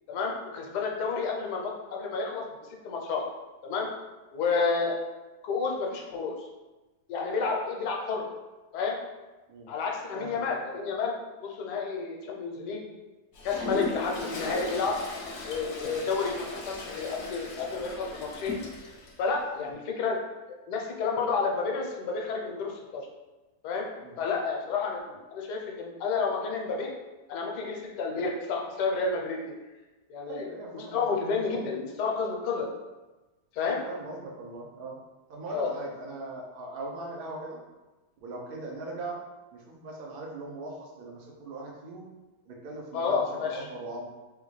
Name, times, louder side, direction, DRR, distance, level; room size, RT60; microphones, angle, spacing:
voice 1, 0.1-2.5 2.8-3.3 3.6-3.9 4.3-5.0 5.4-6.5 7.1-8.2 8.7-9.0 9.7-11.1 11.4-12.8 13.4-15.0 15.4-18.5 19.2-20.2 20.7-23.1 23.6-23.9 24.2-26.9 27.3-29.5 30.1-32.7 33.5-33.8 35.5-35.7 42.9-43.7, left 4 dB, 85° left, 0 dB, 1.2 m, -30 dB
voice 2, 10.1-10.5 15.8-16.0 19.6-19.8 24.0-24.2 30.3-31.1 33.6-35.0 35.3-37.6 38.2-39.2 39.5-42.1 42.5-44.1, right 2 dB, 90° right, -1 dB, 0.5 m, -40 dB
Toilet flush, 13.3-19.1, left 2 dB, 65° left, 0.8 m, -37 dB
3.6 x 2.3 x 3.1 m, 1.1 s
omnidirectional pair, 1.8 m